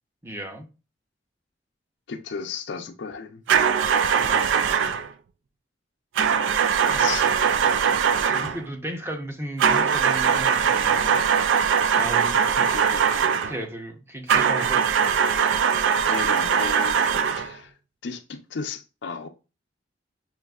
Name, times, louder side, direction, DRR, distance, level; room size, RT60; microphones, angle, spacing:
voice 1, 0.2-0.7 4.1-4.5 7.1-7.2 8.2-11.3 12.0-12.4 13.5-14.8, right 1 dB, 15° right, 0.7 m, -35 dB
voice 2, 2.1-3.4 6.7-7.3 8.2-8.5 12.6-13.3 16.0-17.0 17.3-17.7 18.0-19.3, left 5 dB, 65° left, 0.5 m, -35 dB
sound 1, 3.5-5.1 6.2-8.6 9.6-13.6 14.3-17.5, right 7 dB, 85° right, 0.3 m, -21 dB
6.3 x 2.5 x 2.3 m
head